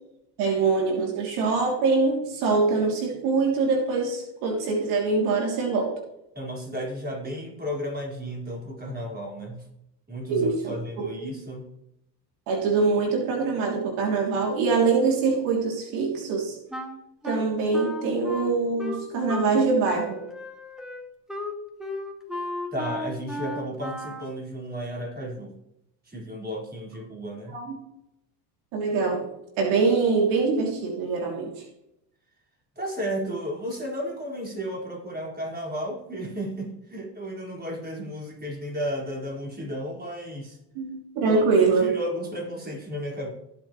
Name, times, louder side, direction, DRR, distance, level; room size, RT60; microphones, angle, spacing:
voice 1, 0.4-5.9 10.3-11.1 12.5-16.6 17.2-20.2 27.5-27.8 28.7-29.3 29.6-31.6 40.7-41.9, right 4 dB, 75° right, 0 dB, 3.2 m, -24 dB
voice 2, 6.3-9.7 10.1-11.7 22.7-25.6 26.0-27.5 32.7-40.6 41.2-41.4 41.7-43.3, equal, 20° right, -2 dB, 4.9 m, -33 dB
Wind instrument woodwind instrument, 16.7-19.6 19.8-24.3, left 1 dB, ahead, 2.4 m, -35 dB
16.5 x 8.0 x 3.2 m, 0.82 s
supercardioid pair, 85°, 49 cm